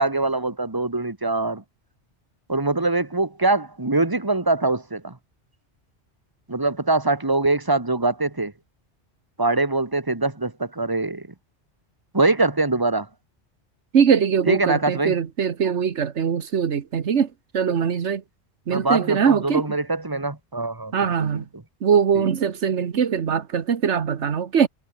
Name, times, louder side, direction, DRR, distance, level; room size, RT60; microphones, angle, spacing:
voice 1, 0.0-1.6 2.5-5.2 6.5-8.5 9.4-11.3 12.1-13.1 14.5-15.1 18.7-21.6 22.1-22.3, right 2 dB, 20° right, 2.0 m, -23 dB
voice 2, 13.9-17.3 17.5-18.2 18.7-19.6 20.9-21.4 21.8-24.7, right 7 dB, 85° right, 1.5 m, -21 dB
omnidirectional pair, 1.2 m